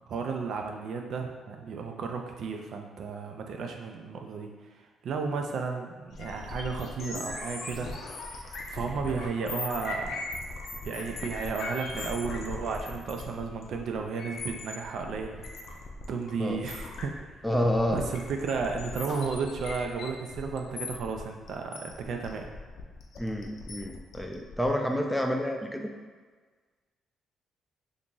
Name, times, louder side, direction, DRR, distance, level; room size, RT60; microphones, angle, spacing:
voice 1, 0.1-4.8 5.0-7.9 8.4-10.2 10.8-15.4 16.1-17.5 17.9-22.5, right 5 dB, 65° right, 3 dB, 0.4 m, -33 dB
sound 1, 6.1-24.7, left 3 dB, 65° left, 0.5 m, -39 dB
voice 2, 17.4-18.0 23.2-25.9, equal, 5° left, 2 dB, 0.4 m, -29 dB
2.9 x 2.5 x 3.7 m, 1.4 s
cardioid pair, 90°, 0 cm